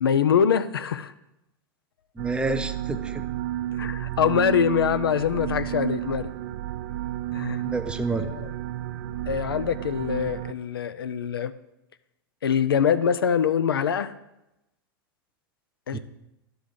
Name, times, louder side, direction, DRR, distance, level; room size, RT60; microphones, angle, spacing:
voice 1, 0.0-1.1 3.8-6.3 7.3-7.6 8.1-8.5 9.3-11.5 12.4-14.1 15.9-16.0, left 8 dB, 80° left, 12 dB, 0.4 m, -24 dB
voice 2, 2.2-3.2 7.6-8.3 15.9-16.0, right 3 dB, 10° right, 8 dB, 0.6 m, -29 dB
sound 1, 2.2-10.5, right 13 dB, 60° right, 0.4 m, -32 dB
11.0 x 3.9 x 5.0 m, 0.91 s
hypercardioid pair, 95°, 12 cm